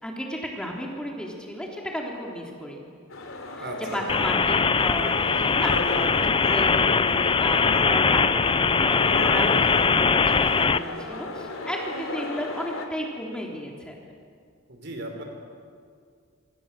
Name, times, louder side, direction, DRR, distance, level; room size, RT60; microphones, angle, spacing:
voice 1, 0.0-2.8 3.9-9.5 9.7-13.9, equal, 5° left, -1 dB, 3.5 m, -33 dB
sound 1, 3.1-12.9, left 3 dB, 85° left, 3.3 m, -36 dB
voice 2, 3.6-4.1 9.2-9.7 14.7-15.2, right 1 dB, 60° right, 3 dB, 4.9 m, -36 dB
sound 2, 4.1-10.8, left 5 dB, 25° left, 0.6 m, -21 dB
27.5 x 26.0 x 7.6 m, 2.1 s
head